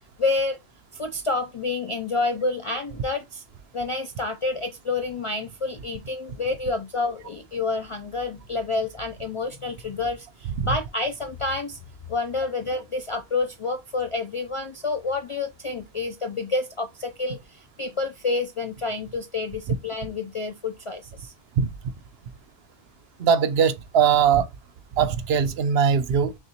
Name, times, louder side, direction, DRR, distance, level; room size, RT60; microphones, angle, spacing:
voice 1, 0.2-0.6 0.9-3.4 3.7-11.8 12.1-21.3, left 3 dB, 50° left, 0.3 m, -29 dB
voice 2, 23.2-24.5 24.9-26.4, right 7 dB, 70° right, 0.8 m, -21 dB
6.4 x 2.3 x 2.9 m
omnidirectional pair, 1.1 m